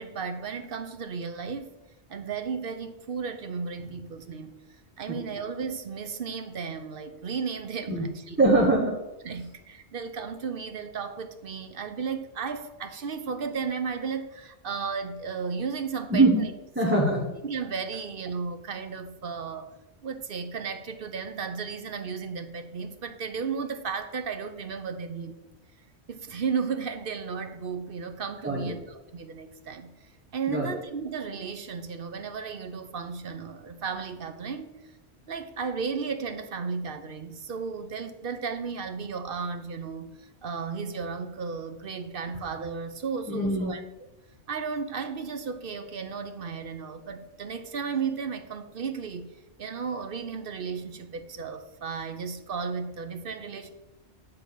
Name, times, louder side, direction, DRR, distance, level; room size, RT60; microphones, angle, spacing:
voice 1, 0.0-1.7 2.1-4.5 5.0-8.5 9.2-16.5 17.4-19.7 20.0-25.4 26.1-29.9 30.3-34.7 35.3-43.8 44.5-49.3 49.6-53.7, right 5 dB, 55° right, 0.8 m, -34 dB
voice 2, 8.4-9.0 16.1-16.4 16.8-17.3 28.4-28.7 30.5-30.8 43.3-43.7, right 2 dB, 10° right, 1.1 m, -22 dB
8.2 x 3.9 x 6.7 m
omnidirectional pair, 1.2 m